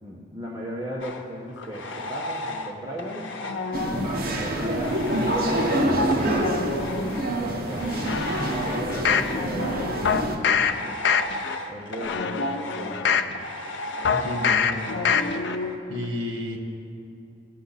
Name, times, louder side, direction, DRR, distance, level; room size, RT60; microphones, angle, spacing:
voice 1, 0.0-3.3 3.8-6.6 7.1-8.2 8.5-11.0 11.7-13.4, equal, 20° right, -6 dB, 1.0 m, -37 dB
sound 1, 1.0-2.7 3.0-15.8, left 2 dB, 80° left, 0.8 m, -33 dB
sound 2, 3.7-10.4, right 1 dB, 50° right, 1.1 m, -26 dB
sound 3, 8.1-9.3 10.0-10.7 11.0-11.5 12.0-13.3 14.0-14.7 15.0-15.5 15.9-16.0, left 7 dB, 60° left, 0.4 m, -24 dB
voice 2, 14.1-14.9 15.9-16.6, left 1 dB, 75° right, 2 dB, 1.5 m, -31 dB
17.0 x 7.1 x 4.0 m, 2.7 s
head